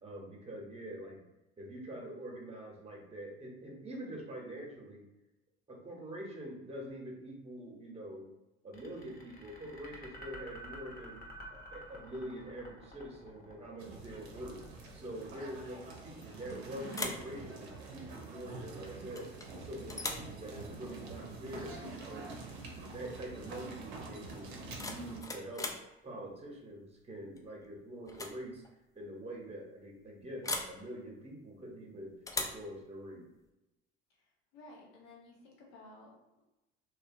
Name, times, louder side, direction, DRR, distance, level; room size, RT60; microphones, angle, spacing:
voice 1, 0.0-1.2 1.6-5.0 5.7-8.3 8.6-11.2 11.5-14.6 14.9-19.3 19.6-21.8 22.1-22.4 22.8-25.7 26.0-28.6 28.9-33.2, right 1 dB, 20° right, 0 dB, 0.8 m, -45 dB
sound 1, 8.7-15.9, left 1 dB, 30° left, 0.8 m, -51 dB
sound 2, 13.8-25.2, right 3 dB, 80° right, 0.6 m, -46 dB
sound 3, 16.2-16.6 16.9-17.3 19.1-19.5 19.9-20.3 22.2-22.3 22.7-23.0 24.5-25.9 27.4-27.7 28.0-28.4 28.6-28.7 30.4-30.8 32.3-32.7, left 3 dB, 10° left, 0.3 m, -39 dB
voice 2, 34.2-36.1, left 2 dB, 70° left, -2 dB, 0.9 m, -55 dB
2.7 x 2.1 x 2.6 m, 0.97 s
hypercardioid pair, 65°, 31 cm